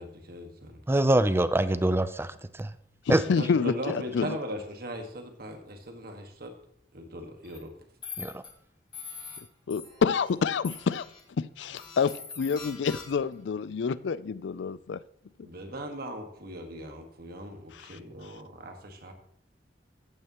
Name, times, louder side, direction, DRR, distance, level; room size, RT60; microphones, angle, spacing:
voice 1, 0.0-0.8 3.4-6.5 6.9-7.7 15.4-19.1, equal, 60° right, 1.6 m, -39 dB
voice 2, 0.9-2.7 3.1-3.2 8.2-8.4, right 1 dB, 15° right, 0.5 m, -24 dB
voice 3, 3.1-4.4 9.4-11.1 11.4-15.0 15.4-15.5 17.7-18.0, left 5 dB, 75° left, 0.4 m, -28 dB
sound 1, 7.4-7.6 8.0-8.5 8.9-9.4 9.7-10.3 10.6-11.2 11.8-13.3, left 5 dB, 25° left, 2.1 m, -43 dB
14.5 x 8.9 x 3.0 m
head